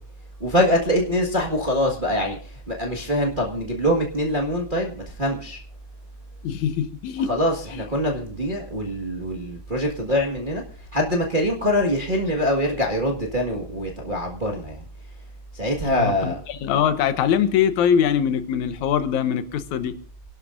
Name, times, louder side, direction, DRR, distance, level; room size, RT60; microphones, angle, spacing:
voice 1, 0.4-5.6 7.3-10.6 10.9-14.8 15.5-16.4, equal, 25° right, 0 dB, 1.1 m, -24 dB
voice 2, 6.4-7.3 15.8-19.9, left 8 dB, 80° left, 11 dB, 2.3 m, -22 dB
27.5 x 12.0 x 2.5 m, 0.41 s
omnidirectional pair, 3.3 m